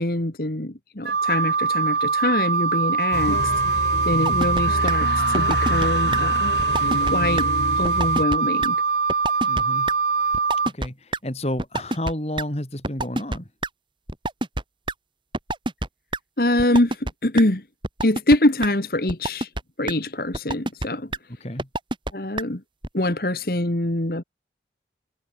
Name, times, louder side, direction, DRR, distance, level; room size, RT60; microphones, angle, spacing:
voice 1, 0.0-3.5 4.1-6.6 7.0-7.5 7.8-8.8 16.4-17.6 18.0-19.5 19.8-21.1 22.1-22.6 22.9-24.2, left 1 dB, 55° left, 1.9 m, -24 dB
Wind instrument woodwind instrument, 1.0-10.7, right 5 dB, 65° right, 0.9 m, -23 dB
sound 1, 3.1-8.3, left 2 dB, 80° left, 1.5 m, -27 dB
sound 2, 4.3-4.6 4.9-5.0 5.3-5.9 6.1-6.2 6.6-7.1 7.4-7.5 7.8-8.4 8.6-8.7 9.1-9.6 9.9-10.0 10.3-10.9 11.1-11.2 11.6-12.4 12.8-13.7 14.1-14.9 15.3-15.9 16.1-16.2 16.6-17.1 17.4-17.5 17.8-18.4 18.6-18.7 19.1-19.6 19.9-20.0 20.3-20.9 21.1-21.2 21.6-22.1 22.4-22.5 22.8-22.9, right 2 dB, 30° right, 3.3 m, -26 dB
voice 2, 9.5-9.9 10.7-13.5 21.4-21.7, left 1 dB, 35° left, 4.1 m, -30 dB
head